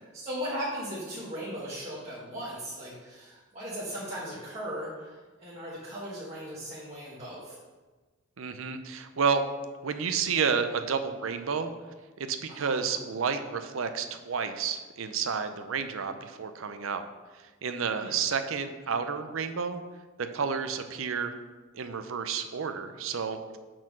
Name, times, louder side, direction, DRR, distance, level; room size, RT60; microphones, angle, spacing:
voice 1, 0.0-7.6 12.5-12.8 18.0-18.2, equal, 30° right, -10 dB, 1.6 m, -38 dB
voice 2, 8.4-9.4 9.8-11.7 12.2-17.0 17.6-19.8 20.3-21.3 21.7-23.6, right 6 dB, 70° right, 9 dB, 0.6 m, -30 dB
6.0 x 4.5 x 6.1 m, 1.3 s
head